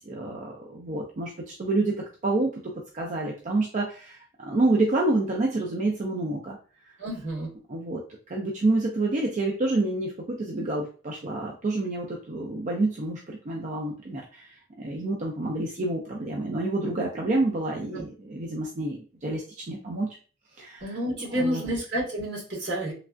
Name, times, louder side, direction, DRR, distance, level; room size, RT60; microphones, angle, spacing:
voice 1, 0.1-6.6 7.7-8.0 8.3-14.5 14.8-19.4 19.7-20.1 20.6-20.9 21.3-21.6, right 2 dB, 40° right, -1 dB, 0.4 m, -28 dB
voice 2, 7.0-7.5 17.9-18.0 20.8-22.9, equal, 75° right, -5 dB, 1.6 m, -29 dB
3.2 x 2.4 x 2.4 m, 0.38 s
head